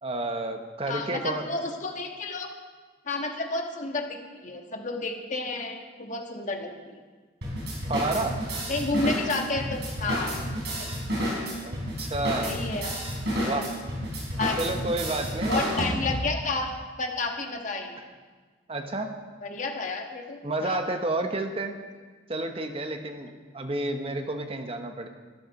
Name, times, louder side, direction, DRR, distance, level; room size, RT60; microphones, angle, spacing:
voice 1, 0.0-1.5 7.9-8.4 11.6-12.6 13.4-13.8 14.6-15.6 18.7-19.2 20.4-21.8 22.3-25.1, right 2 dB, 30° right, 6 dB, 1.0 m, -30 dB
voice 2, 0.9-2.5 3.0-7.0 8.7-10.4 10.8-10.9 12.4-13.0 13.5-13.6 14.4-14.6 15.5-16.7 17.0-18.0 19.4-20.8, left 3 dB, 45° left, 3 dB, 1.6 m, -31 dB
sound 1, 7.4-16.3, equal, 70° right, 4.9 m, -30 dB
13.0 x 11.0 x 6.0 m, 1.4 s
head